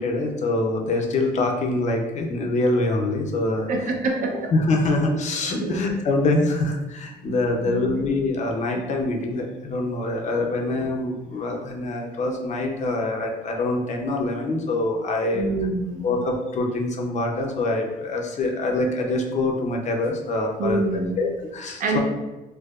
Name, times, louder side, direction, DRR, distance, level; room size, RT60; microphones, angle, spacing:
voice 1, 0.0-3.7 4.5-15.5 16.0-20.8 21.2-22.0, left 2 dB, 45° left, 2 dB, 0.6 m, -24 dB
voice 2, 3.7-4.5 5.6-5.9 7.2-7.4 7.7-8.0 15.3-16.2 20.6-21.2 21.8-22.0, right 3 dB, 50° right, 2 dB, 0.6 m, -26 dB
4.5 x 2.1 x 2.4 m, 1.1 s
cardioid pair, 110°, 17 cm